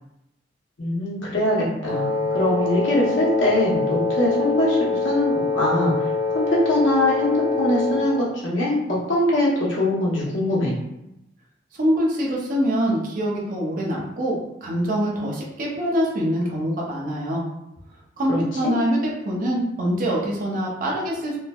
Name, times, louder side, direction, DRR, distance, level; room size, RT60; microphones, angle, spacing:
voice 1, 0.8-10.7 18.3-18.7, left 1 dB, 85° left, -5 dB, 0.8 m, -22 dB
Wind instrument woodwind instrument, 1.9-8.3, left 3 dB, 55° left, 0.6 m, -24 dB
voice 2, 11.8-17.4 18.2-21.4, equal, 45° right, -3 dB, 0.5 m, -24 dB
3.1 x 2.0 x 2.2 m, 0.87 s
head